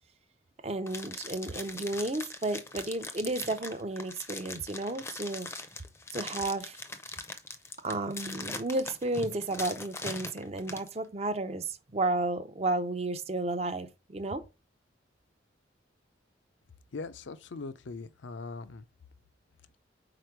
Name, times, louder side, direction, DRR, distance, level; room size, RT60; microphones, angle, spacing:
voice 1, 0.6-5.5 6.1-6.8 7.8-14.4, right 2 dB, 30° right, 0.5 m, -32 dB
sound 1, 0.9-10.9, left 3 dB, 15° left, 0.5 m, -41 dB
voice 2, 16.9-18.9, left 3 dB, 75° left, 0.5 m, -40 dB
4.9 x 4.3 x 4.5 m
head